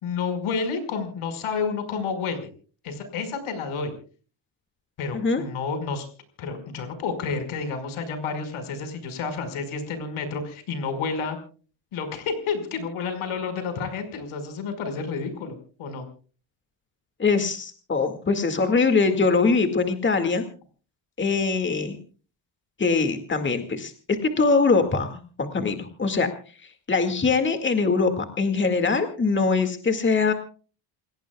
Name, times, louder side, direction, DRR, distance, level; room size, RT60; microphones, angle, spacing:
voice 1, 0.0-2.5 2.8-3.9 5.0-6.1 6.4-11.4 11.9-16.1, left 5 dB, 90° left, 9 dB, 5.4 m, -30 dB
voice 2, 17.2-20.4 21.2-22.0 22.8-25.1 25.4-26.3 26.9-30.3, left 4 dB, 25° left, 6 dB, 2.1 m, -22 dB
28.5 x 18.0 x 2.4 m, 0.39 s
cardioid pair, 150°, 48 cm